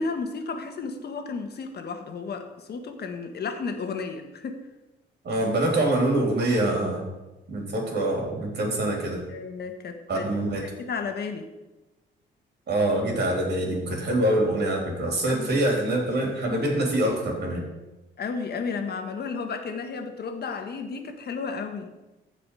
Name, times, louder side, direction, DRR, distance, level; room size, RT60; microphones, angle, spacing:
voice 1, 0.0-4.6 9.3-10.2 10.6-11.5 15.3-15.6 18.2-21.9, left 4 dB, 55° left, 6 dB, 1.5 m, -33 dB
voice 2, 5.2-7.1 7.5-9.2 10.1-10.7 12.7-17.6, right 1 dB, 55° right, -1 dB, 3.8 m, -25 dB
15.0 x 5.0 x 4.9 m, 1.1 s
cardioid pair, 90°, 20 cm